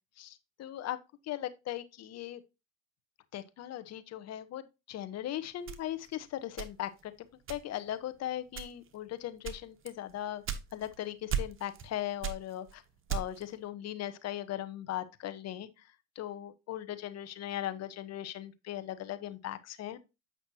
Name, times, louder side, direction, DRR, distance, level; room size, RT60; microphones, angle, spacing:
voice 1, 0.2-1.0 1.3-2.4 3.3-7.1 7.5-10.4 10.7-12.8 13.1-15.7 16.2-20.0, left 12 dB, 40° left, 0.9 m, -38 dB
sound 1, 5.7-7.1 7.5-7.9 8.5-9.0 9.4-11.0 11.3-11.9 12.2-13.5, right 8 dB, 30° right, 1.1 m, -36 dB
8.3 x 5.8 x 2.7 m
hypercardioid pair, 90°, 40 cm